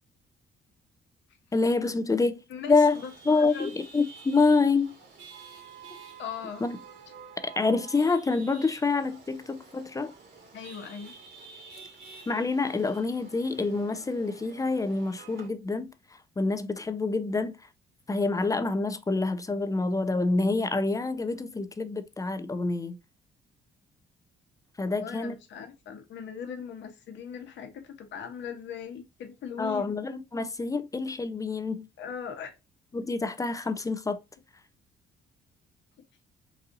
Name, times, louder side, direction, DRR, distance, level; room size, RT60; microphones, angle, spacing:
voice 1, 1.5-2.4 2.7-3.0 3.3-4.9 6.6-6.8 7.4-10.1 12.3-15.9 16.4-17.5 18.1-23.0 24.8-25.4 29.6-31.9 32.9-34.2, left 3 dB, 15° left, 0.4 m, -27 dB
voice 2, 2.5-3.7 6.2-6.6 10.5-11.1 24.8-30.0 32.0-32.5, left 7 dB, 65° left, 0.9 m, -39 dB
Chatter / Vehicle horn car horn honking / Traffic noise roadway noise, 2.9-15.5, right 5 dB, 65° right, 1.5 m, -49 dB
4.0 x 2.6 x 2.5 m
cardioid pair, 90°, 20 cm